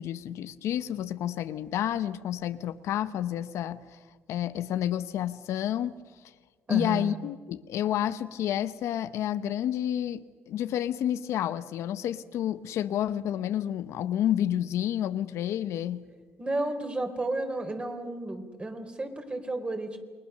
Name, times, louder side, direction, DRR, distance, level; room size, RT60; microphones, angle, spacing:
voice 1, 0.0-4.0 4.3-5.9 6.7-16.0, left 11 dB, 75° left, 0.9 m, -30 dB
voice 2, 6.7-7.2 16.4-20.0, right 2 dB, 20° right, 3.7 m, -32 dB
28.5 x 20.5 x 6.7 m
cardioid pair, 90°, 5 cm